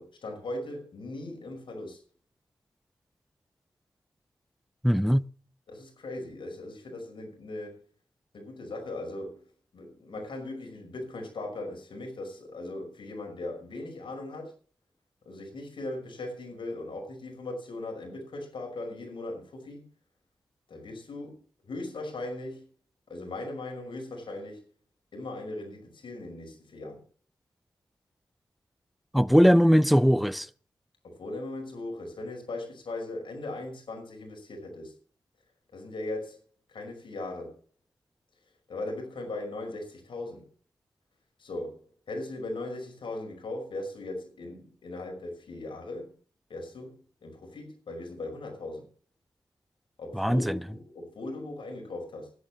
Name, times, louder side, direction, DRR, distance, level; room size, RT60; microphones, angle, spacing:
voice 1, 0.0-2.0 5.7-7.8 8.3-9.5 9.7-14.5 15.3-19.8 20.7-22.7 23.1-24.6 25.1-27.0 31.0-34.9 35.7-36.4 36.7-37.6 38.7-40.5 41.4-41.8 42.1-46.1 46.5-48.9 50.0-52.3, left 2 dB, 85° left, 5.6 m, -38 dB
voice 2, 4.8-5.2 29.1-30.5 50.1-50.6, equal, ahead, 0.6 m, -20 dB
11.0 x 10.5 x 7.4 m
wide cardioid pair, 85°, 8 cm